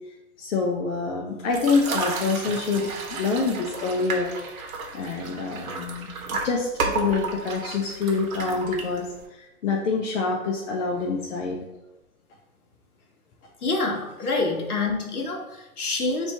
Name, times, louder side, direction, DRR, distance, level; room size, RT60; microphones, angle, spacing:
voice 1, 0.4-4.3 4.9-9.1 9.4-11.6, left 4 dB, 55° left, -1 dB, 0.7 m, -26 dB
sound 1, 1.5-9.3, right 4 dB, 70° right, 0.9 m, -32 dB
voice 2, 13.6-16.3, left 3 dB, 80° left, 0 dB, 1.3 m, -27 dB
3.1 x 2.8 x 4.3 m, 0.98 s
hypercardioid pair, 140°, 44 cm